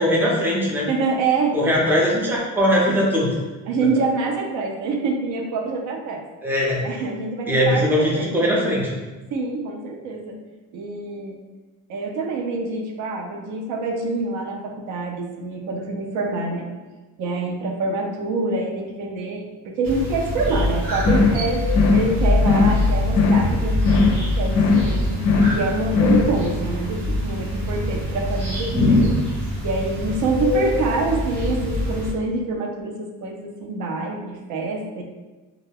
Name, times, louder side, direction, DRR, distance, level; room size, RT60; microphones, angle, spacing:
voice 1, 0.0-0.9 1.5-3.3 6.4-7.0 7.5-8.9, equal, 5° right, -4 dB, 0.5 m, -20 dB
voice 2, 0.9-1.6 3.7-6.2 6.8-8.4 9.3-10.4 10.7-11.4 11.9-16.7 17.2-21.6 21.9-29.2 29.6-35.0, right 3 dB, 60° right, 2 dB, 0.6 m, -26 dB
sound 1, 19.8-32.1, left 1 dB, 80° right, 1.1 m, -23 dB
sound 2, 21.0-21.4 21.7-22.1 22.4-22.8 23.1-23.5 23.8-24.2 24.5-24.9 25.2-25.6 25.9-26.3, left 4 dB, 55° left, 0.5 m, -18 dB
2.3 x 2.1 x 3.3 m, 1.2 s
cardioid pair, 135°, 34 cm